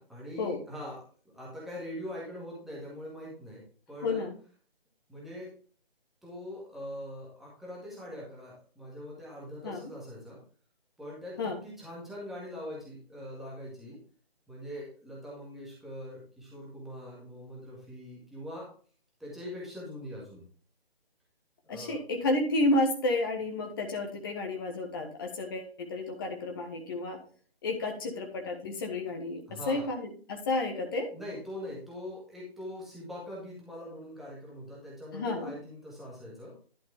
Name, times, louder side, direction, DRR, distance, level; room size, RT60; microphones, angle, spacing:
voice 1, 0.1-1.0 1.3-3.6 3.9-4.3 5.1-5.5 6.2-10.4 11.0-14.0 14.5-18.7 19.2-20.5 21.6-22.0 29.5-29.9 31.1-36.5, left 1 dB, ahead, -6 dB, 1.8 m, -42 dB
voice 2, 4.0-4.3 9.6-9.9 11.4-11.6 21.7-27.2 27.6-31.1 35.1-35.5, left 2 dB, 20° left, 2 dB, 1.3 m, -31 dB
11.5 x 5.8 x 3.5 m, 0.41 s
figure-of-eight pair, 150°, 31 cm